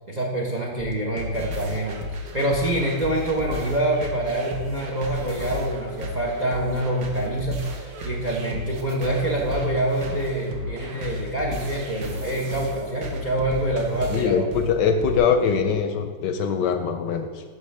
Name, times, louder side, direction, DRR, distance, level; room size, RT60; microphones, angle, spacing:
voice 1, 0.1-14.5, right 1 dB, 90° right, -2 dB, 0.3 m, -26 dB
sound 1, 0.8-15.2, left 1 dB, 55° right, 1.3 m, -33 dB
voice 2, 14.1-17.4, left 6 dB, 75° left, 6 dB, 1.1 m, -22 dB
11.0 x 5.5 x 3.3 m, 1.5 s
omnidirectional pair, 2.2 m